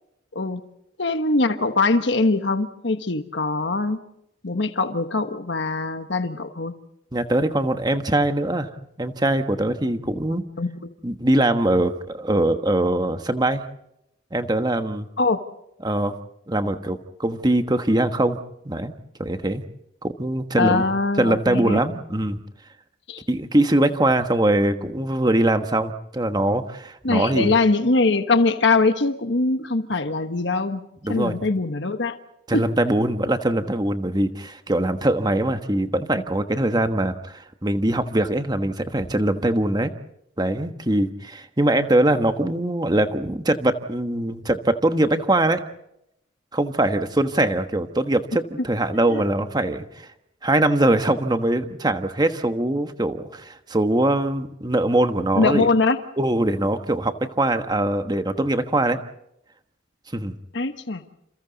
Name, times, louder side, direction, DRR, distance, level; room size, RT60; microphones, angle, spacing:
voice 1, 1.0-4.0 4.4-6.7 10.6-10.9 15.2-15.4 20.6-21.8 23.1-23.2 27.0-30.8 31.1-32.2 32.5-32.6 49.1-49.2 55.4-56.0 60.5-61.0, left 3 dB, 65° left, 8 dB, 1.3 m, -22 dB
voice 2, 7.1-8.7 9.0-10.4 11.0-13.6 14.3-15.1 15.8-16.2 16.5-18.4 18.6-18.9 19.2-19.6 20.0-20.8 21.2-22.4 23.3-27.5 31.0-31.4 32.5-39.9 40.4-45.6 46.5-50.1 50.4-55.7 56.2-59.0 60.1-60.3, right 1 dB, 20° right, 8 dB, 1.3 m, -22 dB
29.0 x 28.5 x 4.1 m, 0.81 s
head